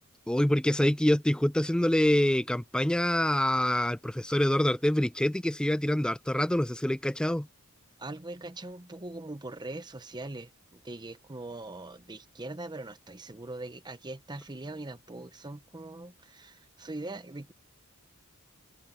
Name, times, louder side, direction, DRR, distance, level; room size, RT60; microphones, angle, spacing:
voice 1, 0.3-7.5, left 1 dB, 5° left, 0.3 m, -26 dB
voice 2, 8.0-17.5, right 2 dB, 20° right, 0.9 m, -41 dB
open air
head